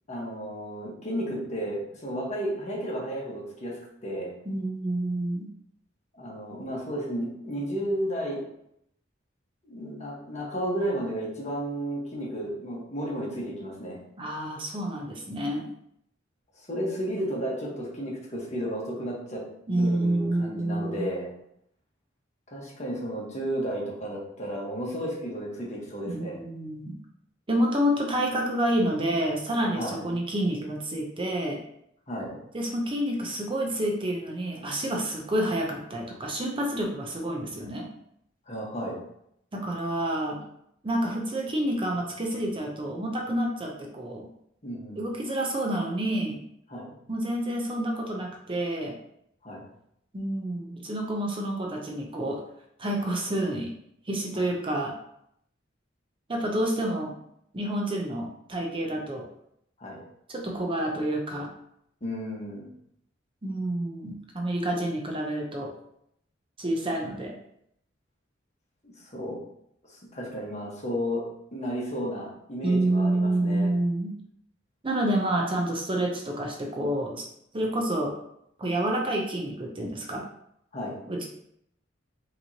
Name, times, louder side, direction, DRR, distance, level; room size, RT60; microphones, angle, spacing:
voice 1, 0.1-4.3 6.1-8.4 9.7-14.0 16.7-19.4 19.8-21.3 22.5-26.4 29.7-30.0 32.1-32.4 38.5-39.0 44.6-45.0 46.7-46.9 49.4-49.6 54.3-54.4 59.8-60.0 62.0-62.7 68.8-69.4 69.9-71.2 71.5-73.7 80.7-81.0, equal, 35° left, -3 dB, 1.3 m, -33 dB
voice 2, 4.5-5.5 14.2-15.7 19.7-21.0 26.1-27.0 27.5-31.6 32.5-37.9 39.5-40.4 40.8-44.3 44.9-46.4 47.1-49.0 50.1-52.4 52.8-53.7 54.1-54.9 56.3-57.1 57.5-59.3 60.3-61.5 63.4-65.7 66.6-67.3 72.6-74.1 74.8-77.3 77.5-78.1 78.6-80.2 81.1-81.2, right 1 dB, 25° right, 0 dB, 0.6 m, -28 dB
5.4 x 3.0 x 2.8 m, 0.74 s
head